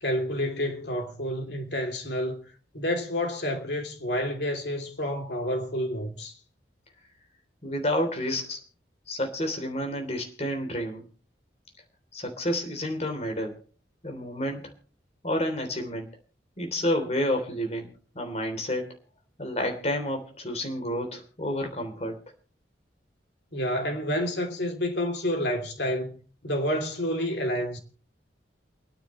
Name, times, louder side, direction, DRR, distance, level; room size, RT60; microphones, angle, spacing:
voice 1, 0.0-2.4 2.7-6.3 23.5-26.2 26.4-27.8, equal, 70° left, 3.0 m, -29 dB
voice 2, 7.6-8.6 9.1-11.0 12.1-13.5 14.0-14.7 15.2-16.1 16.6-19.0 19.4-22.2, left 1 dB, 35° left, 3.4 m, -30 dB
28.5 x 9.6 x 3.2 m
head